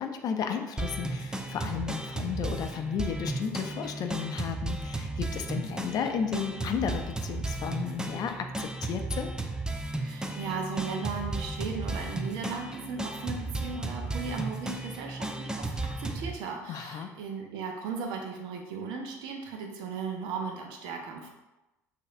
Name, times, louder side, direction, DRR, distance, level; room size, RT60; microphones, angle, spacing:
voice 1, 0.0-9.3 16.7-17.1, left 7 dB, 45° left, 5 dB, 0.5 m, -33 dB
sound 1, 0.8-16.3, right 2 dB, 10° right, 0.5 m, -34 dB
voice 2, 10.0-15.7 16.0-21.3, right 5 dB, 60° right, 2 dB, 0.8 m, -36 dB
6.4 x 2.8 x 2.6 m, 1.0 s
hypercardioid pair, 60°, 9 cm